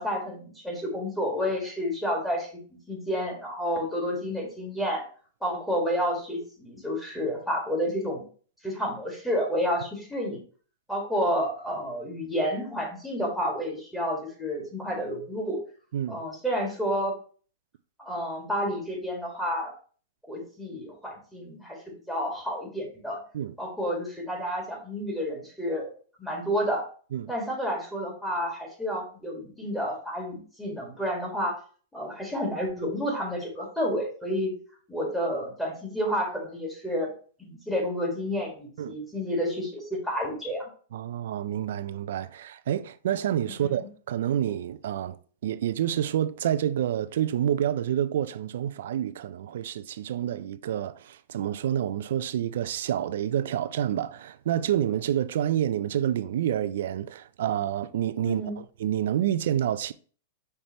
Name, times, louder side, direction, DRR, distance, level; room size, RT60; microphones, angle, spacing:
voice 1, 0.0-2.5 2.9-5.0 5.4-8.2 8.6-10.4 10.9-15.6 16.1-17.1 18.0-19.7 20.3-21.8 22.1-23.2 23.6-25.9 26.2-26.8 27.3-31.6 31.9-34.5 34.9-37.1 37.4-40.7 43.6-43.8 58.2-58.6, equal, 5° left, 1.7 m, -30 dB
voice 2, 15.9-16.2 23.3-23.6 27.1-27.3 38.8-39.0 40.9-45.2 45.4-59.9, right 10 dB, 75° right, 0.3 m, -28 dB
5.5 x 3.3 x 2.9 m
hypercardioid pair, 135°, 0 cm